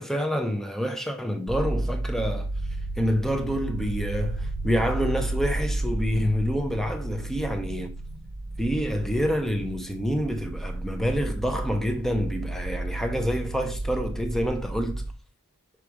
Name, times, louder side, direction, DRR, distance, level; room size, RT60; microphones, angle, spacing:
voice 1, 0.0-2.5 3.0-7.9 8.6-15.0, equal, ahead, 0.5 m, -27 dB
sound 1, 1.5-15.1, right 2 dB, 55° right, 0.6 m, -32 dB
6.0 x 4.8 x 4.6 m
head